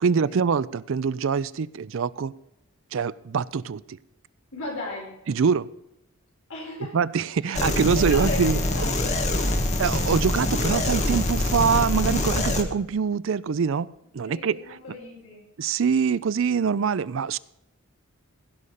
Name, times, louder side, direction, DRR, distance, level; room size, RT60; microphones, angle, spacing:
voice 1, 0.0-2.3 2.9-4.0 5.3-5.7 6.9-8.9 9.8-14.8 15.6-17.4, right 6 dB, 60° right, 19 dB, 0.4 m, -24 dB
voice 2, 4.5-5.1 6.5-7.0 7.4-9.1 14.3-15.4, left 2 dB, 65° left, -4 dB, 4.7 m, -36 dB
sound 1, 7.5-12.6, left 1 dB, 30° left, 1.5 m, -24 dB
16.5 x 5.6 x 6.4 m, 0.84 s
head